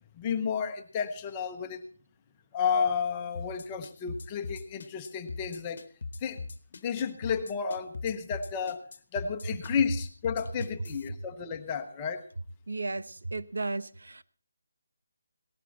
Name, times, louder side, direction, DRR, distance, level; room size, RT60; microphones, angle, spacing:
voice 1, 0.2-1.9 2.5-5.8 6.2-6.4 6.8-8.9 9.1-12.2, left 6 dB, 10° left, 6 dB, 0.8 m, -31 dB
sound 1, 3.3-11.1, left 3 dB, 35° left, 1.1 m, -40 dB
voice 2, 12.7-14.2, right 3 dB, 80° right, 13 dB, 0.9 m, -34 dB
18.0 x 13.0 x 4.0 m, 0.41 s
hypercardioid pair, 180°, 0 cm